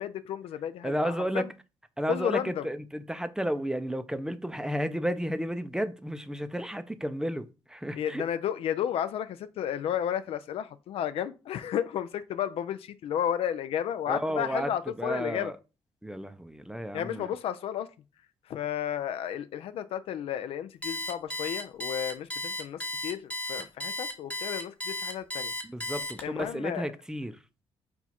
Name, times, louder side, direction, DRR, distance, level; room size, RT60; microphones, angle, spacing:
voice 1, 0.0-1.5 2.1-2.7 8.0-15.5 16.9-17.9 18.5-25.5 26.2-26.9, left 10 dB, 70° left, 0.4 m, -32 dB
voice 2, 0.8-1.5 2.0-8.2 14.1-14.7 15.0-15.5 16.0-17.3 25.6-27.4, equal, 5° right, 0.5 m, -32 dB
Alarm, 20.8-26.5, left 2 dB, 15° left, 0.9 m, -34 dB
4.4 x 2.3 x 4.2 m
cardioid pair, 75°, 10 cm